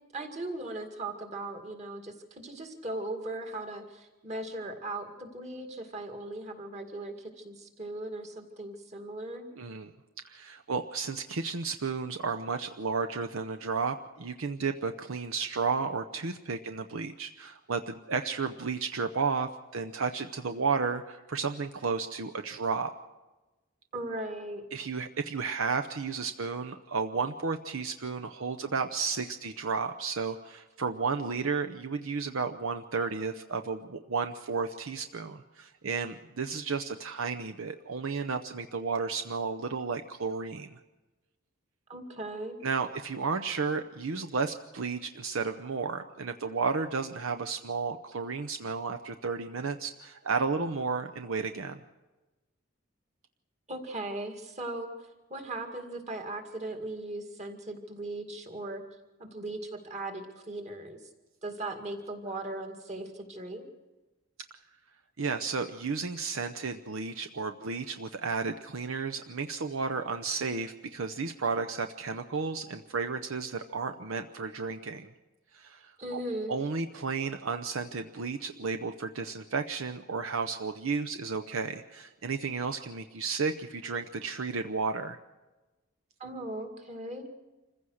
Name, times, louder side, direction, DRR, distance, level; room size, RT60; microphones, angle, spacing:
voice 1, 0.1-9.5 23.9-24.6 41.9-42.6 53.7-58.8 59.2-61.0 61.4-63.7 76.0-76.5 86.2-87.3, right 2 dB, 30° right, 4 dB, 2.2 m, -38 dB
voice 2, 9.6-9.9 10.2-22.9 24.7-40.8 42.6-51.8 65.2-75.1 75.5-76.2 76.5-85.2, right 4 dB, 70° right, 7 dB, 0.7 m, -33 dB
26.5 x 15.5 x 6.4 m, 1.1 s
head